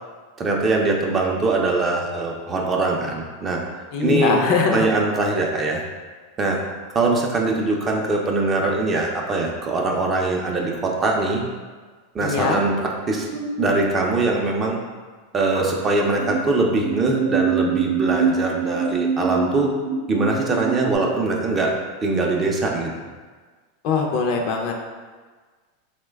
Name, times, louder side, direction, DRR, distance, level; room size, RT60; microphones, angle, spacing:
voice 1, 0.4-3.6 4.0-4.4 4.7-5.8 6.4-6.6 6.9-11.4 12.1-13.3 13.6-14.8 15.3-19.7 20.1-21.7 22.0-22.9, right 3 dB, 25° right, 0 dB, 0.5 m, -22 dB
voice 2, 3.9-4.9 12.2-12.6 23.8-24.7, left 5 dB, 55° left, 2 dB, 0.5 m, -21 dB
sound 1, 13.1-13.7 15.4-16.4 16.8-21.0, right 5 dB, 85° right, 0.5 m, -25 dB
3.1 x 2.1 x 3.3 m, 1.4 s
supercardioid pair, 120°, 0 cm